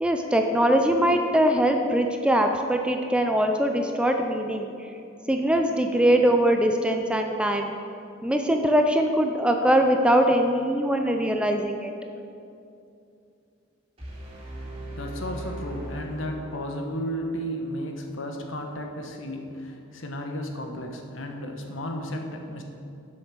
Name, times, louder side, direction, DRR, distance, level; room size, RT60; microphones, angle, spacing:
voice 1, 0.0-4.9 5.3-7.7 8.2-11.9, right 1 dB, 5° right, 4 dB, 0.4 m, -22 dB
sound 1, 14.0-17.0, right 1 dB, 25° right, 2.4 m, -38 dB
voice 2, 14.9-22.6, equal, 70° left, 3 dB, 1.1 m, -33 dB
7.9 x 6.4 x 6.1 m, 2.6 s
head